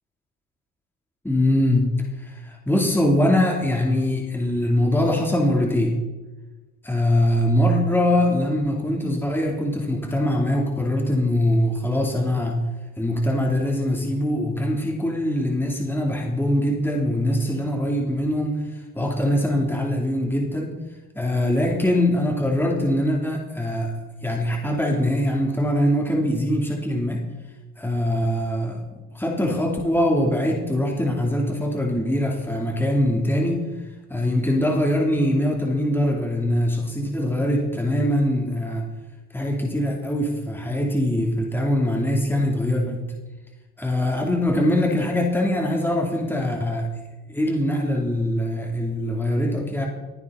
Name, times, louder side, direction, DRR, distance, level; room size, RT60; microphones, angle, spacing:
voice 1, 1.2-6.0 6.8-12.6 13.0-18.6 18.9-20.7 21.2-27.2 27.8-28.8 29.1-33.6 34.1-38.9 39.3-43.0 43.8-46.9 47.3-49.9, left 1 dB, 5° left, 0 dB, 3.4 m, -22 dB
28.0 x 9.6 x 4.3 m, 1.2 s
supercardioid pair, 75°, 42 cm